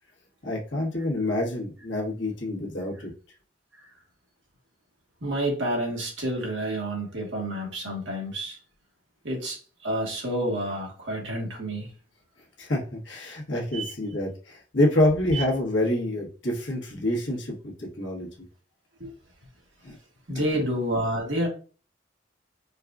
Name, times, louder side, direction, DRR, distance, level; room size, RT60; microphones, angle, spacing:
voice 1, 0.4-3.1 12.6-18.3 19.8-20.0 20.5-20.6, left 1 dB, 80° left, -1 dB, 1.3 m, -27 dB
voice 2, 5.2-8.6 9.2-11.9 13.7-13.9 15.3-15.4 19.0-19.1 20.3-21.5, right 1 dB, 80° right, -1 dB, 1.4 m, -29 dB
4.6 x 2.4 x 2.4 m, 0.37 s
head